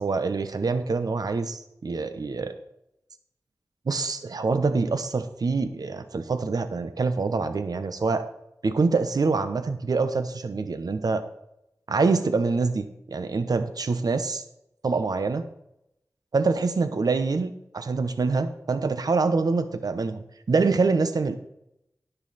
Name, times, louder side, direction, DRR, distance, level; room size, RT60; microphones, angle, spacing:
voice 1, 0.0-2.5 3.9-8.2 8.6-11.2 11.9-14.4 14.8-15.4 16.3-21.3, right 4 dB, 80° right, 10 dB, 1.0 m, -25 dB
16.5 x 5.6 x 4.2 m, 0.82 s
wide cardioid pair, 60°, 6 cm